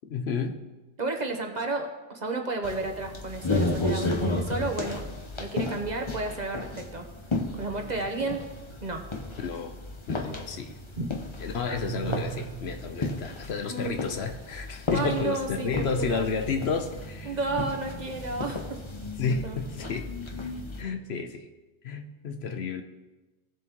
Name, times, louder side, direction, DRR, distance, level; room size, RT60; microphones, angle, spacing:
voice 1, 0.1-0.6 9.4-9.7 10.1-10.8 11.4-17.4 19.2-20.1 20.8-21.4 21.8-22.8, left 5 dB, 65° left, 6 dB, 1.0 m, -31 dB
voice 2, 1.0-5.0 5.4-7.0 7.6-8.4 8.8-9.0 11.0-11.1 13.7-14.0 14.9-16.3 17.2-18.8 19.4-19.6, right 3 dB, 40° right, 3 dB, 1.1 m, -32 dB
sound 1, 2.6-20.8, left 2 dB, 30° left, 0.8 m, -34 dB
sound 2, 11.7-13.2, right 10 dB, 85° right, 0.9 m, -37 dB
17.0 x 7.2 x 3.0 m, 1.1 s
omnidirectional pair, 1.2 m